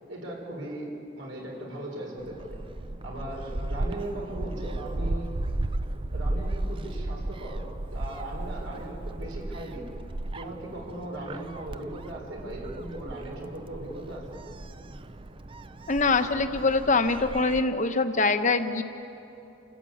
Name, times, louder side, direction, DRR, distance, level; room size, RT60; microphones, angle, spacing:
voice 1, 0.1-2.6 3.0-5.3 6.1-7.6 7.9-9.9 10.3-14.4, right 1 dB, 75° right, -1 dB, 4.2 m, -38 dB
Gull seagull, 2.2-17.6, right 1 dB, 25° right, 0.5 m, -35 dB
voice 2, 15.9-18.8, left 3 dB, 40° left, 8 dB, 1.0 m, -24 dB
29.0 x 14.5 x 8.5 m, 2.9 s
head